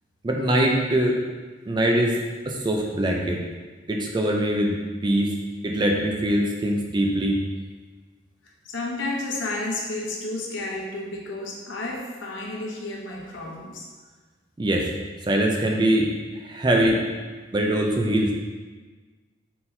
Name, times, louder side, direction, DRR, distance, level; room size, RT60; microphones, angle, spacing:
voice 1, 0.2-1.2 1.7-2.2 2.5-3.4 3.9-5.3 5.6-7.4 14.6-14.9 15.3-16.1 16.4-17.0 17.5-18.3, right 1 dB, 25° right, 1 dB, 0.4 m, -22 dB
voice 2, 8.6-13.9, left 2 dB, 75° left, -1 dB, 0.8 m, -31 dB
4.3 x 3.8 x 2.6 m, 1.4 s
head